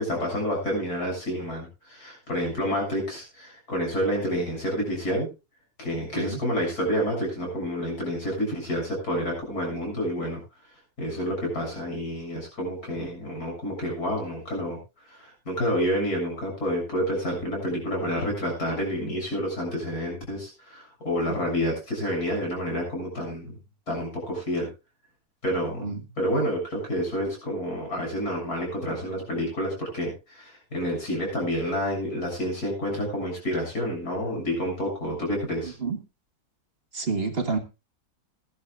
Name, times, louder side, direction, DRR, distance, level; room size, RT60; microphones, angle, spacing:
voice 1, 0.0-5.3 5.8-10.4 11.0-14.8 15.1-23.6 23.9-24.7 25.4-25.9 26.2-35.7, equal, 70° left, 0 dB, 7.7 m, -29 dB
voice 2, 36.9-37.6, right 4 dB, 40° right, 8 dB, 1.6 m, -28 dB
20.0 x 11.5 x 2.5 m, 0.27 s
omnidirectional pair, 1.7 m